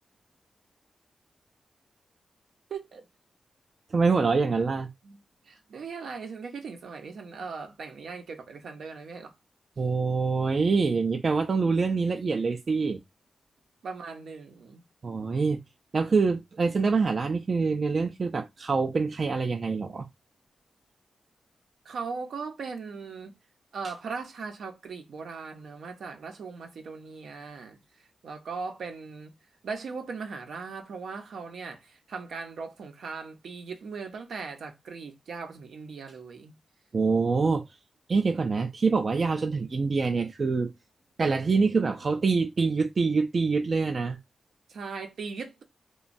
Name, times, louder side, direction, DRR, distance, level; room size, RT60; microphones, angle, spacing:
voice 1, 2.7-3.1 5.0-9.3 13.8-14.8 21.8-23.3 23.7-29.3 29.6-36.5 44.7-45.6, right 5 dB, 85° right, 0.6 m, -39 dB
voice 2, 3.9-4.9 9.8-13.0 15.0-15.6 15.9-20.1 36.9-37.6 38.1-40.7 41.2-44.2, right 4 dB, 45° right, 0.3 m, -25 dB
3.0 x 2.2 x 2.5 m
wide cardioid pair, 115°, 0 cm